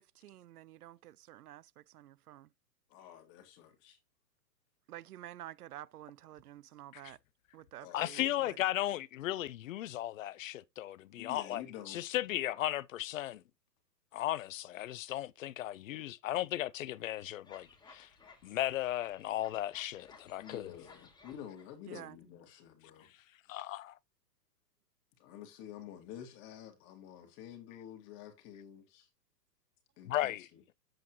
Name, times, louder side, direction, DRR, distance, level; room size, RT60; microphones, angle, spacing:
voice 1, 0.0-2.5 4.9-7.2 7.5-8.6 21.9-22.2, right 13 dB, 65° right, 0.6 m, -50 dB
voice 2, 2.9-4.0 7.8-8.6 11.1-12.0 20.4-23.1 25.2-29.1 30.0-30.3, left 10 dB, 30° left, 2.0 m, -49 dB
voice 3, 7.9-13.4 14.1-18.1 18.4-20.7 23.5-24.0 30.1-30.4, left 14 dB, 55° left, 0.6 m, -36 dB
sound 1, 17.4-21.7, left 4 dB, 10° left, 1.9 m, -59 dB
8.3 x 7.8 x 3.0 m
hypercardioid pair, 130°, 49 cm